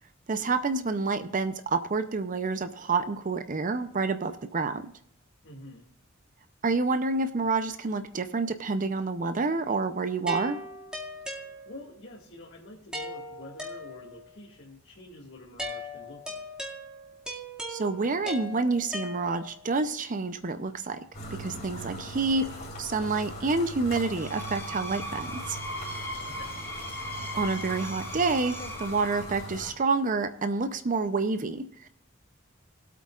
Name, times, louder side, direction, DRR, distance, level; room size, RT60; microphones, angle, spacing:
voice 1, 0.3-4.8 6.6-10.6 17.7-21.0 21.3-22.5 22.8-25.6 27.3-31.9, right 3 dB, 40° right, 10 dB, 0.6 m, -28 dB
voice 2, 5.4-5.9 11.7-16.4 26.2-26.6, left 1 dB, 60° left, -5 dB, 2.1 m, -47 dB
sound 1, 10.3-12.0 12.9-14.3 15.6-19.7, equal, 5° right, 2.2 m, -39 dB
sound 2, 21.1-29.7, equal, 45° left, 4.0 m, -40 dB
Screech, 24.0-29.5, equal, 15° left, 3.1 m, -38 dB
20.0 x 8.4 x 2.4 m, 0.66 s
head